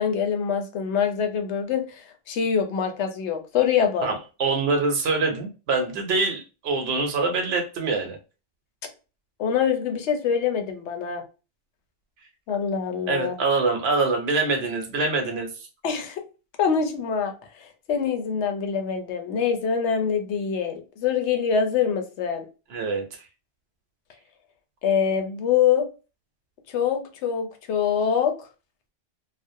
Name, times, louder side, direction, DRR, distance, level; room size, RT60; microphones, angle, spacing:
voice 1, 0.0-4.1 9.4-11.2 12.5-13.3 15.8-16.2 16.6-17.3 17.9-22.5 24.8-25.9 26.7-28.3, left 7 dB, 75° left, 0.9 m, -24 dB
voice 2, 4.0-8.2 13.1-15.7 22.7-23.0, right 3 dB, 65° right, 0.9 m, -25 dB
2.4 x 2.1 x 2.5 m
omnidirectional pair, 1.2 m